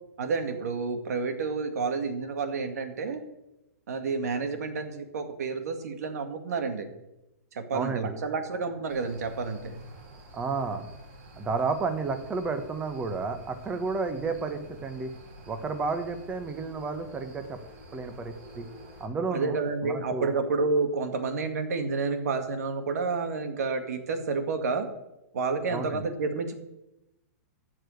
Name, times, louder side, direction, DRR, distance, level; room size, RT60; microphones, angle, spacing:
voice 1, 0.2-3.2 3.9-6.9 7.5-9.8 19.3-24.9 25.3-26.6, right 4 dB, 75° right, 7 dB, 2.0 m, -30 dB
voice 2, 7.7-8.2 10.3-10.9 11.4-15.1 15.5-17.6 17.9-18.7 19.0-19.6 19.8-20.3 25.7-26.0, right 4 dB, 15° right, 8 dB, 1.2 m, -31 dB
sound 1, 8.9-19.1, right 1 dB, 45° right, 4.6 m, -49 dB
13.5 x 4.9 x 7.9 m, 0.93 s
hypercardioid pair, 140°, 9 cm